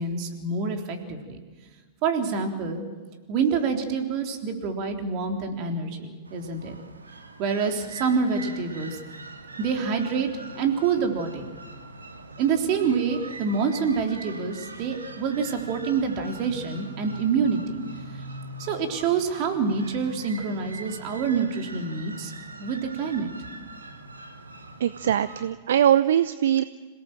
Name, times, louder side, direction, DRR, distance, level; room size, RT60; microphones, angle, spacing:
voice 1, 0.0-1.4 2.0-2.8 3.3-6.8 7.4-9.0 9.6-10.3 10.5-11.5 12.4-17.8 18.6-22.3 22.6-23.3, right 5 dB, 45° right, 4 dB, 3.6 m, -26 dB
sound 1, 6.2-25.5, right 2 dB, 85° right, 1.9 m, -42 dB
voice 2, 24.8-26.6, right 10 dB, 65° right, 15 dB, 0.6 m, -21 dB
27.0 x 17.5 x 7.5 m, 1.4 s
figure-of-eight pair, 100°, 0 cm